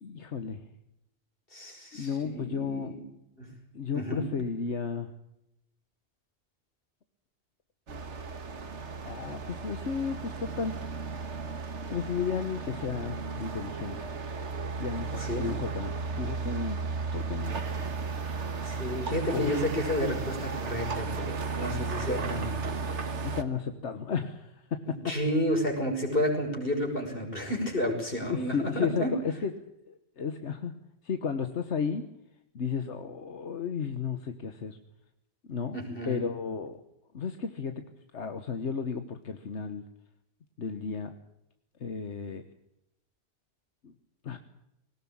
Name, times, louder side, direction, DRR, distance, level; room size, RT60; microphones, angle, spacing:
voice 1, 0.0-0.6 1.9-3.0 3.7-5.1 9.0-10.8 11.9-14.0 14.8-16.8 17.1-17.5 19.3-19.5 23.1-25.1 28.2-29.5 29.9-30.8 31.0-32.1 32.5-34.8 35.5-35.8 36.0-36.8 37.1-37.8 38.1-39.8 40.6-41.1 41.8-42.4 43.8-43.9 44.2-44.4, left 6 dB, 85° left, 8 dB, 1.5 m, -33 dB
voice 2, 1.5-3.0 3.4-3.5 3.9-4.3 15.2-15.6 18.6-22.6 25.0-29.1 35.7-36.3, equal, 55° left, 2 dB, 5.9 m, -31 dB
sound 1, 7.9-23.4, right 4 dB, 85° right, 1.8 m, -35 dB
20.5 x 18.5 x 8.7 m, 0.83 s
omnidirectional pair, 1.2 m